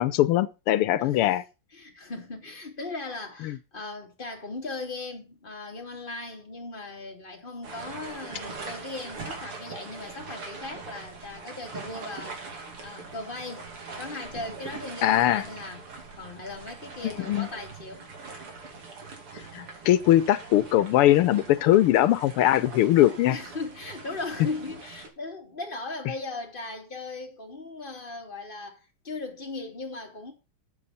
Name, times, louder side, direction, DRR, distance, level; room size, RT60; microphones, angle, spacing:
voice 1, 0.0-1.4 3.4-3.5 15.0-15.4 17.0-17.5 19.5-23.4, left 13 dB, 90° left, 1.7 m, -21 dB
voice 2, 1.0-1.4 1.7-12.4 12.8-15.9 16.2-18.1 23.3-30.3, left 3 dB, 25° left, 3.0 m, -38 dB
sound 1, 7.6-25.1, right 4 dB, 90° right, 3.6 m, -42 dB
12.0 x 8.4 x 4.2 m
omnidirectional pair, 2.4 m